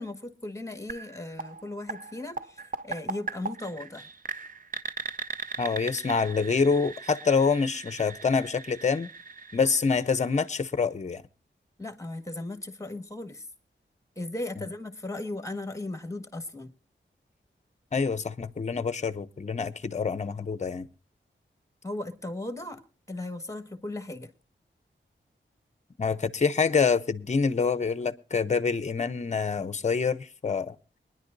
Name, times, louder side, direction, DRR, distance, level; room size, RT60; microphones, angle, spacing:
voice 1, 0.0-4.1 11.8-13.4 14.2-16.7 21.8-22.8 23.1-24.3, left 2 dB, 15° left, 1.6 m, -37 dB
sound 1, 0.9-10.7, right 4 dB, 45° right, 0.5 m, -39 dB
voice 2, 5.6-9.1 9.5-11.2 14.6-14.7 17.9-20.9 26.0-30.8, left 5 dB, 35° left, 0.6 m, -26 dB
23.5 x 10.5 x 2.6 m
wide cardioid pair, 105°, 20 cm